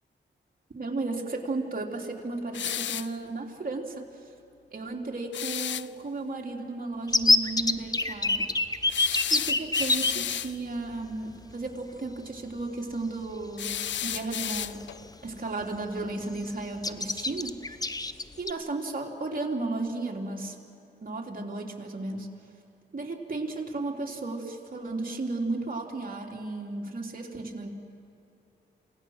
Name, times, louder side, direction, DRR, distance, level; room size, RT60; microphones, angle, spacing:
voice 1, 0.7-4.0 4.7-8.5 9.3-14.9 15.2-17.6 18.4-20.5 21.0-22.3 22.9-27.7, right 2 dB, 45° right, 0 dB, 3.1 m, -34 dB
sound 1, 2.5-3.2 5.3-5.9 8.9-10.6 13.6-15.0, left 10 dB, 75° left, 0.4 m, -33 dB
sound 2, 7.1-10.1 11.1-11.2 11.5-11.7 13.3-13.4 13.9-14.2 14.6-15.3 15.6-15.8 16.0-16.5 16.8-18.5, left 2 dB, 20° left, 0.8 m, -25 dB
28.0 x 18.0 x 6.4 m, 2.7 s
cardioid pair, 55°, 19 cm